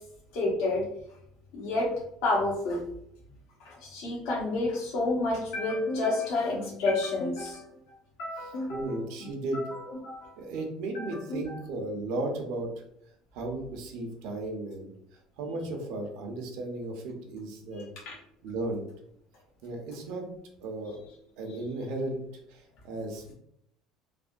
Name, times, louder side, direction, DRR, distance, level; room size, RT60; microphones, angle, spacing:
voice 1, 0.3-0.8 1.5-1.9 2.2-2.8 3.6-7.7 8.2-9.0 9.5-10.3 10.9-11.6 17.8-18.1, left 2 dB, 75° left, -4 dB, 0.8 m, -30 dB
voice 2, 8.7-9.6 10.4-12.7 13.3-14.9 15.4-17.9 18.4-18.8 19.6-20.3 20.6-21.0 21.4-22.2 22.5-23.3, right 2 dB, 75° right, 3 dB, 0.7 m, -35 dB
3.3 x 2.2 x 2.5 m, 0.73 s
cardioid pair, 145°, 0 cm